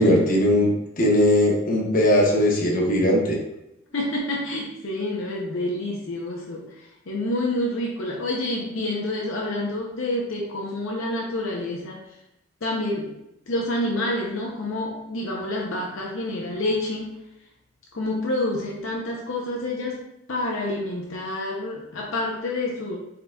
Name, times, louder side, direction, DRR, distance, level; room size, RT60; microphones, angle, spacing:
voice 1, 0.0-3.4, left 1 dB, 40° left, -2 dB, 0.9 m, -19 dB
voice 2, 3.9-12.0 12.6-13.1 13.5-17.2 17.9-20.0 20.3-23.0, left 1 dB, 65° left, -2 dB, 0.6 m, -28 dB
4.3 x 3.8 x 2.3 m, 0.86 s
head